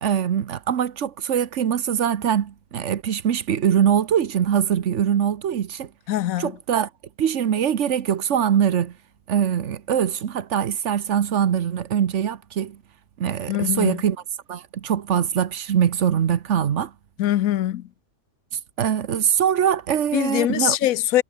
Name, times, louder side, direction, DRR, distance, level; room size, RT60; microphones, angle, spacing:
voice 1, 0.0-5.9 6.4-6.9 7.2-9.0 9.3-12.8 13.2-14.2 14.5-16.9 18.8-20.8, right 9 dB, 60° right, 1.2 m, -22 dB
voice 2, 6.1-6.5 13.5-14.0 17.2-17.9 20.1-21.2, left 13 dB, 75° left, 1.1 m, -22 dB
omnidirectional pair, 1.5 m